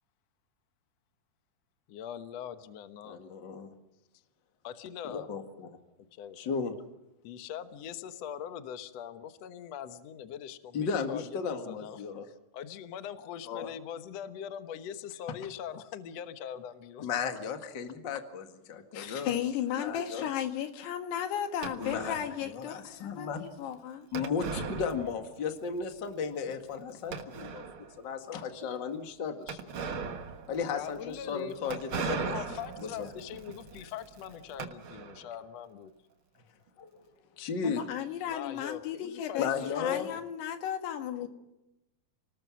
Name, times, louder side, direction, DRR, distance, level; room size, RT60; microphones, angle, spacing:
voice 1, 1.9-3.2 4.6-5.3 6.1-6.5 7.2-17.1 18.9-19.2 20.0-20.1 30.7-35.9 38.3-40.2, left 9 dB, 70° left, 1.6 m, -42 dB
voice 2, 3.0-3.7 5.1-5.8 6.4-6.7 10.7-12.3 13.5-13.7 17.0-19.4 19.8-20.3 21.8-22.2 22.4-23.4 24.1-27.6 28.0-29.8 30.5-31.8 32.1-32.3 32.8-33.1 36.8-37.0 37.4-37.8 39.4-40.1 41.2-41.3, left 6 dB, 40° left, 1.8 m, -35 dB
voice 3, 18.9-24.1 37.6-41.3, left 10 dB, 90° left, 3.7 m, -35 dB
sound 1, 21.6-22.4 24.1-25.5 25.8-25.9 26.5-26.6 27.1-28.0 29.5-35.4, right 5 dB, 60° right, 1.3 m, -38 dB
29.0 x 19.5 x 6.2 m
omnidirectional pair, 4.6 m